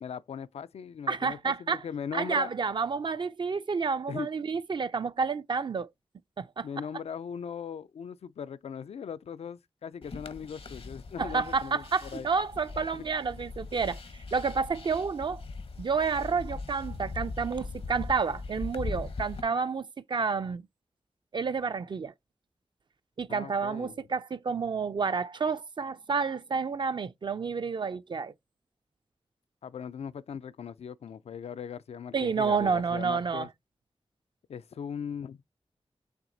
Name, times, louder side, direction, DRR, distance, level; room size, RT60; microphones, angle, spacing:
voice 1, 0.0-2.5 4.1-4.3 6.6-12.3 12.9-13.0 23.3-23.9 29.6-33.5 34.5-35.4, left 7 dB, 80° left, 0.4 m, -39 dB
voice 2, 1.1-1.8 2.1-5.9 6.4-6.7 11.2-14.0 14.3-15.4 15.8-20.6 21.3-22.1 23.2-28.3 32.1-33.5, right 5 dB, 50° right, 0.3 m, -30 dB
sound 1, 10.0-19.4, left 3 dB, 65° left, 0.8 m, -40 dB
5.9 x 3.5 x 2.6 m
wide cardioid pair, 100°, 11 cm